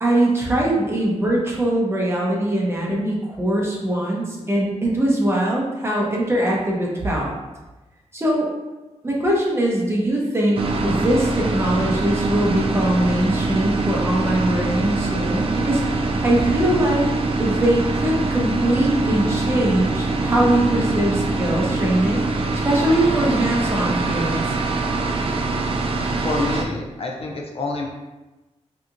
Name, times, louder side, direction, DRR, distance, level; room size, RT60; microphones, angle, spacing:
voice 1, 0.0-7.3 8.1-8.5 9.0-17.0 17.4-22.3 22.6-24.4, right 1 dB, 20° right, -3 dB, 0.7 m, -21 dB
sound 1, 10.6-26.6, right 3 dB, 50° right, 0.4 m, -23 dB
voice 2, 26.2-27.9, left 3 dB, 55° left, 0 dB, 0.4 m, -27 dB
3.4 x 2.8 x 2.5 m, 1.1 s
wide cardioid pair, 145°, 12 cm